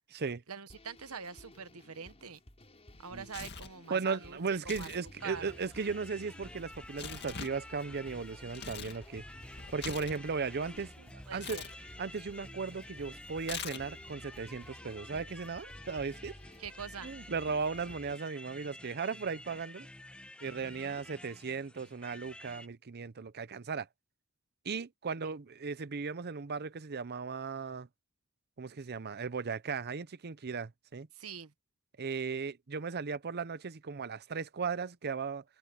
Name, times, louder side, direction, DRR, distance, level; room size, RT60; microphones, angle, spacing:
voice 1, 0.5-2.4 3.0-4.9 5.2-5.5 11.0-11.6 16.6-17.1 20.6-21.0 25.2-25.3 31.1-31.5, right 6 dB, 85° right, 1.2 m, -45 dB
sound 1, 0.7-18.2, left 1 dB, 30° left, 5.8 m, -54 dB
Tearing, 2.9-3.8 4.6-5.0 5.3-9.0 9.3-10.8 11.4-11.7 13.4-14.1, left 7 dB, 50° left, 2.0 m, -44 dB
voice 2, 3.9-9.2 9.7-10.9 11.3-11.6 12.0-16.3 17.0-19.9 20.4-23.9 24.6-27.9 28.6-31.1 32.0-35.4, right 5 dB, 50° right, 0.7 m, -36 dB
sound 2, 5.2-22.7, left 1 dB, 5° left, 1.0 m, -51 dB
head